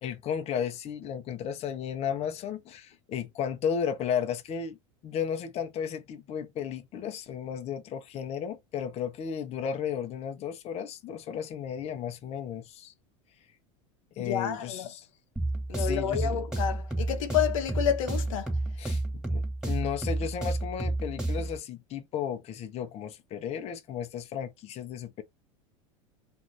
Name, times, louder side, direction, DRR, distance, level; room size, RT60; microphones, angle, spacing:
voice 1, 0.0-4.8 5.0-12.9 14.2-15.1 15.8-16.4 18.8-25.2, left 8 dB, 40° left, 0.7 m, -34 dB
voice 2, 14.2-14.9 15.7-18.6, left 9 dB, 85° left, 0.7 m, -29 dB
sound 1, 15.4-21.6, right 2 dB, 5° right, 1.7 m, -31 dB
2.6 x 2.5 x 3.0 m
hypercardioid pair, 100°, 17 cm